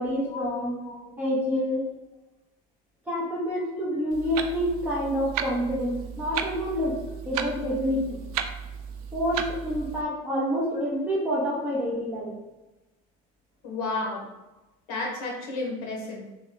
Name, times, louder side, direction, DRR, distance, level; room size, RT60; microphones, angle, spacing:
voice 1, 0.0-0.8 1.2-1.8 3.1-8.2 9.1-12.3, equal, 10° right, -6 dB, 0.6 m, -28 dB
Clock, 4.1-10.0, right 8 dB, 85° right, 0.4 m, -35 dB
voice 2, 13.6-14.3 14.9-16.2, left 2 dB, 50° left, -1 dB, 1.2 m, -32 dB
3.1 x 3.1 x 3.8 m, 1.0 s
cardioid pair, 175°, 19 cm